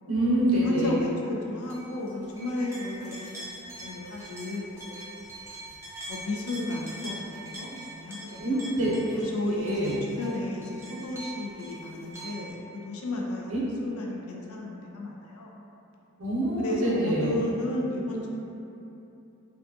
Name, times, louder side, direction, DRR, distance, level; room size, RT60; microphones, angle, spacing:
voice 1, 0.1-0.9 8.3-9.2 9.4-10.0 13.5-13.6 16.2-17.4, right 1 dB, 75° right, -6 dB, 0.6 m, -26 dB
voice 2, 0.6-3.5 3.8-5.0 6.1-8.7 9.2-15.5 16.6-18.3, left 2 dB, 85° left, -1 dB, 0.4 m, -34 dB
sound 1, 1.7-12.5, right 1 dB, 15° right, 0.4 m, -43 dB
2.5 x 2.3 x 2.3 m, 2.9 s
head